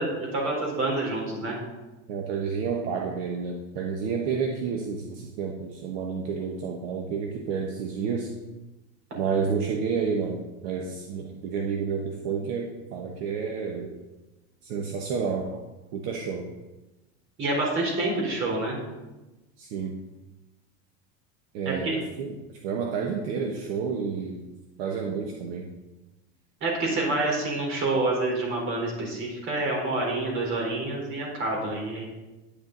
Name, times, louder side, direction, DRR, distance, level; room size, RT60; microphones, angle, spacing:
voice 1, 0.0-1.6 17.4-18.8 21.6-22.0 26.6-32.0, right 2 dB, 40° right, -1 dB, 4.0 m, -27 dB
voice 2, 2.1-8.3 9.1-14.0 14.6-15.6 15.9-16.5 19.6-19.9 21.5-22.4 22.6-24.4 24.8-25.7, right 6 dB, 65° right, 2 dB, 1.3 m, -30 dB
10.0 x 9.8 x 4.0 m, 1.1 s
cardioid pair, 160°, 32 cm